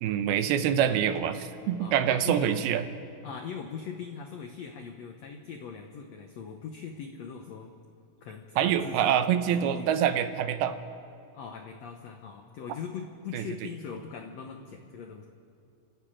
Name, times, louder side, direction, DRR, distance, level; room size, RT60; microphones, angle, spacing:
voice 1, 0.0-2.8 8.6-10.8 13.3-13.7, right 9 dB, 85° right, 9 dB, 2.8 m, -26 dB
voice 2, 1.8-2.6 3.2-7.7 8.2-9.2 9.6-9.9 11.3-15.3, left 6 dB, 70° left, 4 dB, 1.7 m, -40 dB
30.0 x 13.0 x 8.8 m, 2.4 s
omnidirectional pair, 4.4 m